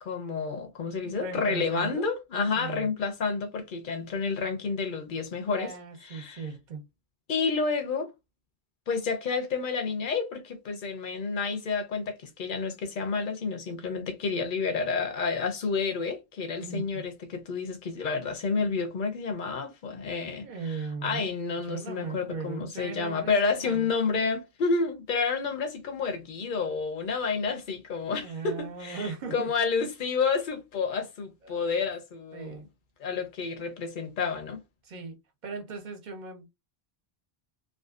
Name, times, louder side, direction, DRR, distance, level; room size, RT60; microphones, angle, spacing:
voice 1, 0.0-5.7 6.0-6.4 7.3-8.1 8.9-32.6 33.0-34.6, left 4 dB, 55° left, 0.7 m, -30 dB
voice 2, 1.0-2.1 2.5-2.9 5.5-6.8 16.6-17.1 20.3-21.3 21.6-23.9 28.0-29.5 31.4-31.8 32.3-32.7 34.8-35.2 35.4-36.5, right 5 dB, 50° right, 0.7 m, -38 dB
2.5 x 2.3 x 2.3 m
omnidirectional pair, 1.1 m